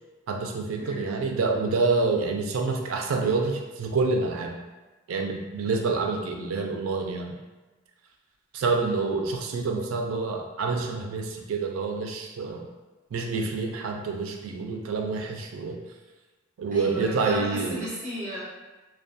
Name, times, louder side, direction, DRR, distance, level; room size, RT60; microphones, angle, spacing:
voice 1, 0.3-4.5 5.1-7.4 8.5-12.7 13.1-15.8 16.6-17.8, right 4 dB, 85° right, 3 dB, 0.4 m, -27 dB
voice 2, 0.8-1.1 16.7-18.4, equal, 35° right, -9 dB, 1.0 m, -35 dB
2.2 x 2.2 x 2.6 m, 1.2 s
head